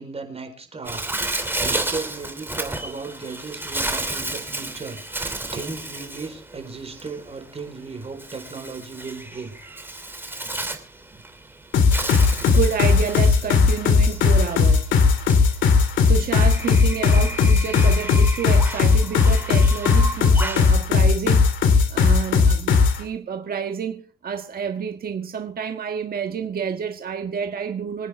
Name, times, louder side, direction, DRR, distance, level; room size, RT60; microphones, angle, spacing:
voice 1, 0.0-9.5 11.1-11.2, right 4 dB, 30° right, 4.3 m, -36 dB
Bird, 0.8-20.7, right 2 dB, 10° right, 2.9 m, -32 dB
sound 1, 11.7-23.0, left 5 dB, 75° left, 2.6 m, -17 dB
voice 2, 11.9-15.0 15.8-28.1, right 7 dB, 50° right, 1.6 m, -29 dB
25.5 x 9.4 x 3.5 m
cardioid pair, 90°, 20 cm